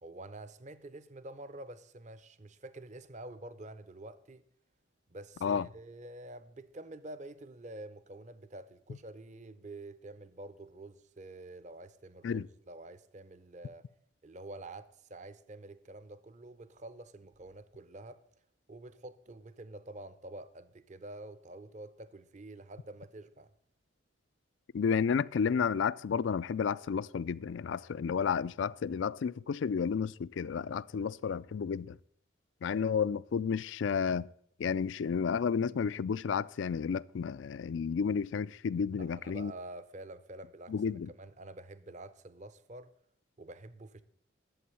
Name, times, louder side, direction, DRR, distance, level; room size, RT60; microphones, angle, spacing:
voice 1, 0.0-4.4 5.1-13.8 14.2-18.2 18.7-23.5 39.0-40.7 41.2-42.9 43.4-44.0, right 2 dB, 35° right, 0.6 m, -48 dB
voice 2, 24.7-32.0 32.6-34.3 34.6-39.5 40.7-41.1, left 6 dB, 65° left, 0.3 m, -31 dB
11.5 x 7.8 x 6.9 m
head